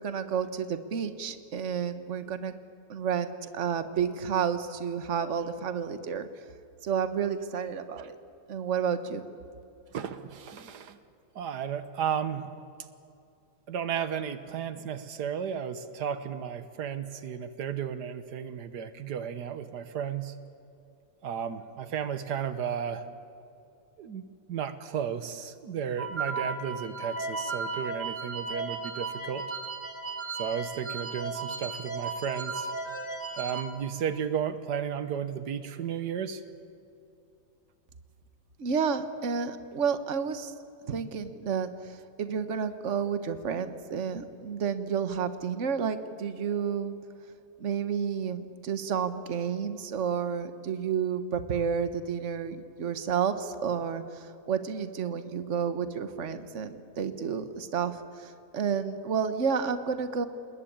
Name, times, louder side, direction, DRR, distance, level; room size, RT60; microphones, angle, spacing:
voice 1, 0.0-2.5 2.9-6.3 6.8-8.2 8.5-9.2 38.6-40.5 40.9-46.9 47.6-60.3, right 7 dB, 50° right, 10 dB, 1.5 m, -31 dB
voice 2, 9.9-11.0 11.3-12.5 13.7-20.4 21.2-23.1 24.0-24.2 24.5-29.4 30.4-32.7 33.3-36.4, right 8 dB, 90° right, 11 dB, 1.7 m, -34 dB
sound 1, 26.0-33.6, right 4 dB, 10° right, 2.4 m, -35 dB
28.5 x 20.5 x 8.8 m, 2.6 s
omnidirectional pair, 1.7 m